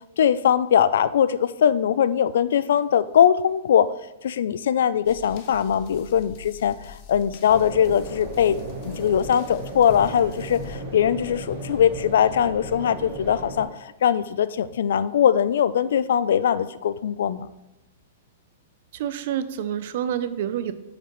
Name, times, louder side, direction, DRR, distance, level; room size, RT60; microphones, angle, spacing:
voice 1, 0.2-3.9 4.2-8.6 8.8-17.5, left 9 dB, 65° left, 16 dB, 0.3 m, -21 dB
sound 1, 5.1-10.8, left 9 dB, 35° left, 0.7 m, -45 dB
sound 2, 7.5-13.6, right 1 dB, 20° right, 1.6 m, -36 dB
voice 2, 18.9-20.7, right 10 dB, 45° right, 13 dB, 0.5 m, -28 dB
8.2 x 5.8 x 3.1 m, 0.96 s
hypercardioid pair, 170°, 0 cm